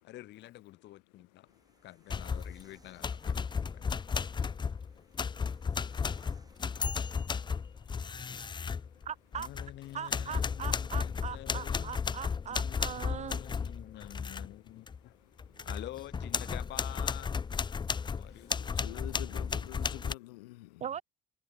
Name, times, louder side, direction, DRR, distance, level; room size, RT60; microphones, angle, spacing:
voice 1, 0.0-1.5 1.8-3.9 6.7-7.2 9.4-12.0 12.5-15.2 15.6-17.3 18.1-18.8, left 15 dB, 60° left, 1.5 m, -48 dB
voice 2, 1.5-1.8 3.9-9.0 15.1-15.2 15.4-15.7 17.7-20.7, left 21 dB, 75° left, 1.4 m, -52 dB
sound 1, 1.5-20.0, right 2 dB, 20° right, 7.3 m, -68 dB
sound 2, 2.1-2.6 3.0-9.8 10.1-14.5 14.9-15.0 15.4-20.1, left 5 dB, 20° left, 0.5 m, -34 dB
voice 3, 9.1-9.5 9.9-13.4 20.8-21.0, right 8 dB, 35° right, 0.4 m, -40 dB
figure-of-eight pair, 50°, 20 cm